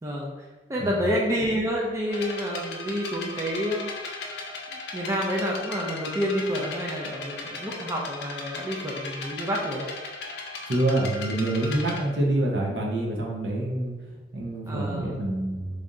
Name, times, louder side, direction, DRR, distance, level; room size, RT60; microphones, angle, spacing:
voice 1, 0.0-3.9 4.9-9.9 14.7-15.2, equal, 15° right, -3 dB, 0.4 m, -29 dB
sound 1, 2.1-12.0, left 3 dB, 60° left, 0.5 m, -37 dB
voice 2, 10.7-13.9 14.3-15.8, right 1 dB, 65° right, -1 dB, 0.7 m, -26 dB
3.3 x 2.6 x 3.7 m, 1.3 s
head